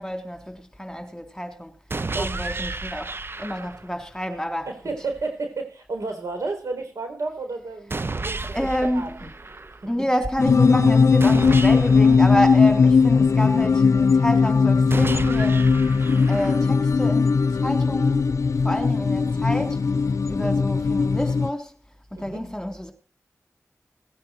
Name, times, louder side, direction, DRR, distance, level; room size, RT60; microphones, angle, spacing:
voice 1, 0.0-1.7 2.2-3.1 3.4-4.7 8.5-9.2 9.9-15.7 16.3-18.3 18.6-19.8 20.3-21.7 22.1-22.9, equal, 10° left, 3.4 m, -28 dB
sound 1, 1.9-3.9 7.9-9.9 11.2-13.2 14.9-16.9, right 3 dB, 45° right, 0.7 m, -32 dB
voice 2, 4.7-9.1 20.3-20.7 22.1-22.4, right 3 dB, 90° right, 4.3 m, -32 dB
sound 2, 10.4-21.5, left 5 dB, 75° left, 0.5 m, -19 dB
18.0 x 9.6 x 4.5 m
cardioid pair, 40°, 5 cm